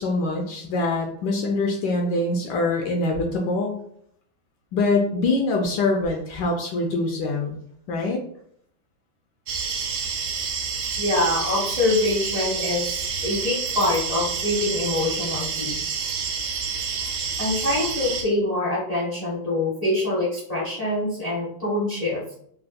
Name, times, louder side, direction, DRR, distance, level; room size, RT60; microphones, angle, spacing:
voice 1, 0.0-3.8 4.7-7.6 7.9-8.2, left 2 dB, 75° left, 0 dB, 1.1 m, -24 dB
sound 1, 9.5-18.2, right 6 dB, 75° right, 1.3 m, -28 dB
voice 2, 11.0-16.0 17.4-22.3, left 2 dB, 40° left, -6 dB, 0.5 m, -25 dB
3.9 x 2.1 x 2.4 m, 0.67 s
omnidirectional pair, 2.2 m